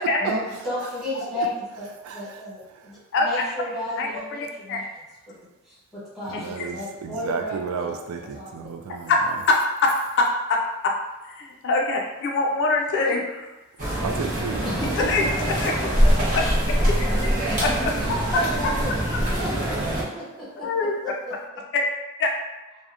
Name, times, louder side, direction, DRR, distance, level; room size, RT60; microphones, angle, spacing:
voice 1, 0.2-1.5 1.8-4.8 5.3-5.4 5.6-7.9 8.3-8.7 13.1-13.2 14.6-15.1 16.3-16.4 17.2-17.3 18.0-18.9 19.4-20.2 20.6-20.7 21.0-21.1, equal, ahead, -10 dB, 1.1 m, -33 dB
voice 2, 2.0-2.4 2.7-2.9 6.3-9.1 14.0-14.7, right 5 dB, 75° right, 4 dB, 0.3 m, -32 dB
voice 3, 3.1-3.4 4.0-4.8 6.3-6.7 9.1-9.2 9.5-9.9 10.2-10.9 11.3-13.4 15.0-15.2 15.6-15.7 16.7-16.8 17.6-17.7 20.6-20.9 21.7-21.8 22.2-22.3, left 3 dB, 55° left, 1 dB, 0.3 m, -23 dB
sound 1, 13.8-20.0, equal, 35° right, 0.7 m, -23 dB
2.7 x 2.0 x 2.4 m, 1.1 s
head